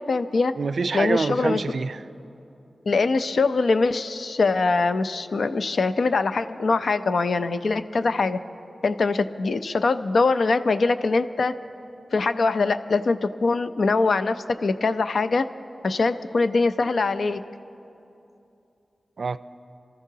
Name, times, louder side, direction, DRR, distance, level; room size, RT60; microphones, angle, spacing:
voice 1, 0.0-0.5 0.9-1.6 2.9-8.4 8.8-11.5 12.1-15.5 15.8-17.4, left 3 dB, 75° left, 11 dB, 0.5 m, -23 dB
voice 2, 0.6-2.0 19.2-19.4, right 4 dB, 75° right, 14 dB, 0.4 m, -26 dB
27.5 x 13.5 x 2.8 m, 2.7 s
cardioid pair, 45°, 0 cm